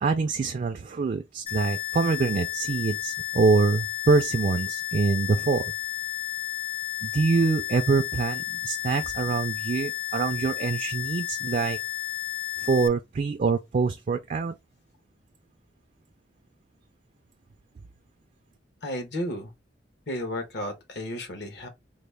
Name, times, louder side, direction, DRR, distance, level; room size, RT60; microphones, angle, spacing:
voice 1, 0.0-5.7 7.0-11.8 12.6-14.5, right 4 dB, 40° right, 0.3 m, -25 dB
sound 1, 1.5-12.9, left 15 dB, 30° left, 0.5 m, -32 dB
voice 2, 18.8-19.5 20.1-21.7, left 1 dB, 65° left, 1.1 m, -33 dB
4.0 x 2.1 x 3.3 m
head